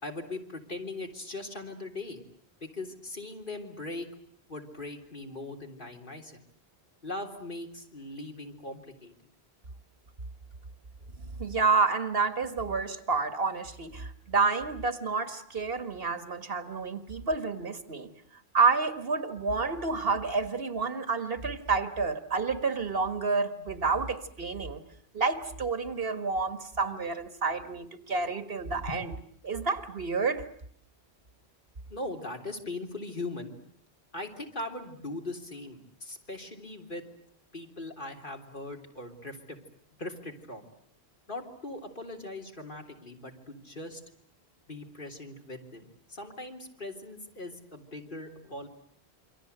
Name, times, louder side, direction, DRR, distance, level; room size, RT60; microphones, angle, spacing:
voice 1, 0.0-2.2 2.6-4.1 4.5-6.4 7.0-9.1 28.9-29.0 31.9-33.6 34.1-37.0 37.5-39.6 40.0-40.7 41.3-44.0 44.7-48.7, left 2 dB, 50° left, 3 dB, 3.5 m, -40 dB
voice 2, 11.4-18.1 18.5-24.8 25.1-29.1 29.4-30.4, right 4 dB, 65° right, 10 dB, 2.0 m, -29 dB
27.5 x 24.5 x 8.0 m, 0.64 s
omnidirectional pair, 1.1 m